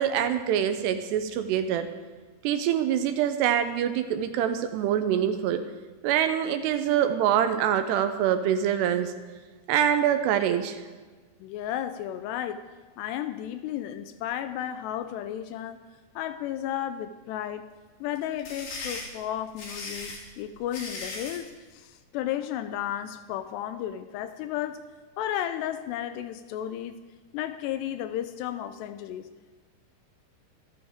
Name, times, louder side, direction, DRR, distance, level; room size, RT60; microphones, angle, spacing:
voice 1, 0.0-1.9 2.4-5.6 6.0-9.1 9.7-10.8, right 9 dB, 80° right, 9 dB, 2.7 m, -25 dB
voice 2, 11.4-12.7 13.0-15.8 16.2-17.7 18.0-24.8 25.2-27.0 27.3-29.3, left 11 dB, 80° left, 10 dB, 2.6 m, -33 dB
sound 1, 18.2-21.5, left 3 dB, 60° left, 4.7 m, -38 dB
25.5 x 9.4 x 3.6 m, 1.4 s
omnidirectional pair, 5.1 m